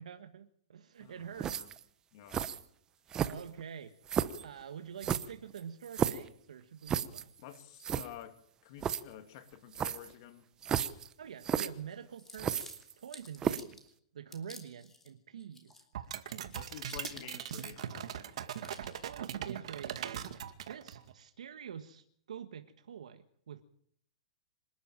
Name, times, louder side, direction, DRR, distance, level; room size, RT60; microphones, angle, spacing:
voice 1, 0.0-1.8 3.3-3.9 4.4-7.3 10.9-15.9 18.6-20.3 20.6-23.6, right 8 dB, 85° right, 1.6 m, -47 dB
voice 2, 1.0-1.7 2.1-2.5 7.4-10.5 16.5-18.1, left 11 dB, 45° left, 2.8 m, -50 dB
sound 1, 1.4-1.8 2.3-2.6 3.1-3.6 4.1-4.4 5.0-6.3 6.9-7.2 7.6-7.7 7.8-8.1 8.8-9.0 9.7-10.1 10.6-11.1 11.4-11.7 12.4-13.1 13.4-13.7, right 8 dB, 20° right, 0.9 m, -33 dB
sound 2, 12.2-13.9 14.3-15.1 15.4-16.0 16.3-18.1 18.5-19.1, left 3 dB, 10° left, 3.1 m, -52 dB
sound 3, 15.9-21.1, right 10 dB, 65° right, 2.2 m, -40 dB
26.0 x 11.5 x 9.1 m
hypercardioid pair, 150°, 4 cm